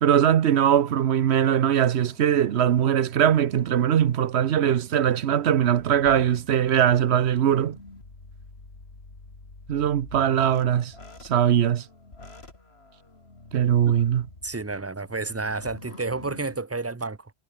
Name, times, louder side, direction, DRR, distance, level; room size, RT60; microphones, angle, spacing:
voice 1, 0.0-7.8 9.7-10.9 11.2-11.8 13.5-14.3, right 9 dB, 90° right, 1.1 m, -21 dB
sound 1, 0.7-4.5 5.1-16.6, left 2 dB, 75° left, 3.8 m, -48 dB
voice 2, 14.4-17.3, right 3 dB, 20° right, 0.5 m, -31 dB
omnidirectional pair, 1.1 m